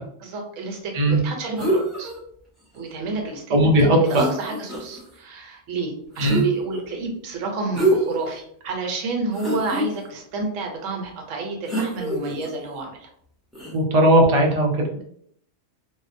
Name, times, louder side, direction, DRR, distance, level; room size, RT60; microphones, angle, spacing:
voice 1, 0.2-2.1 2.7-13.1 14.9-15.0, right 3 dB, 80° right, 2 dB, 1.0 m, -30 dB
sound 1, 1.6-2.2 3.8-3.9 4.1-5.0 6.2-6.8 7.7-8.3 8.7-8.8 9.3-9.9 11.7-12.5 13.5-13.7, right 1 dB, ahead, 0.6 m, -25 dB
voice 2, 3.5-4.2 6.2-6.4 13.7-14.8, right 1 dB, 55° right, 0 dB, 0.4 m, -17 dB
2.6 x 2.1 x 2.5 m, 0.67 s
omnidirectional pair, 1.3 m